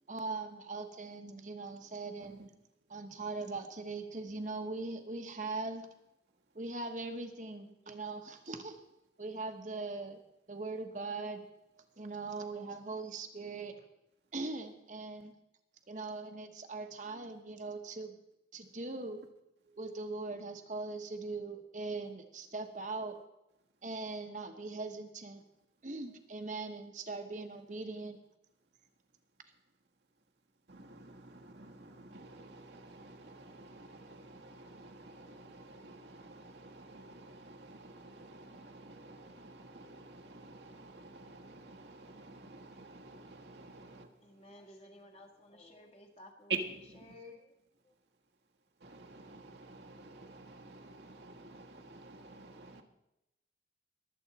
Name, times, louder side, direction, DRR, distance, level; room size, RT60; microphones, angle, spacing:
voice 1, 0.0-2.5 2.9-5.9 6.5-8.8 9.2-10.2 10.5-11.4 11.8-13.7 14.3-15.3 15.9-18.2 18.5-19.2 19.7-23.2 23.8-25.4 25.8-28.2, right 3 dB, 45° right, 1.2 m, -41 dB
voice 2, 30.7-44.6 46.5-47.2 48.8-52.8, right 3 dB, 75° right, 1.5 m, -48 dB
voice 3, 44.2-46.5 47.1-47.5, left 2 dB, 35° left, 1.6 m, -54 dB
22.0 x 8.0 x 4.2 m
head